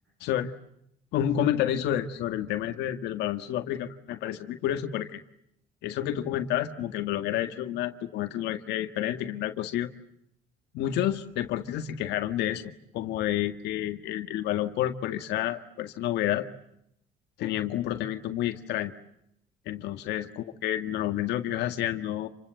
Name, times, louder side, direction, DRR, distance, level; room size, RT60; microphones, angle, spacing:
voice 1, 0.2-0.5 1.1-5.2 5.8-9.9 10.7-16.5 17.4-18.9 19.7-22.3, left 11 dB, 85° left, 7 dB, 1.8 m, -29 dB
29.0 x 25.0 x 7.8 m, 0.75 s
cardioid pair, 110°, 17 cm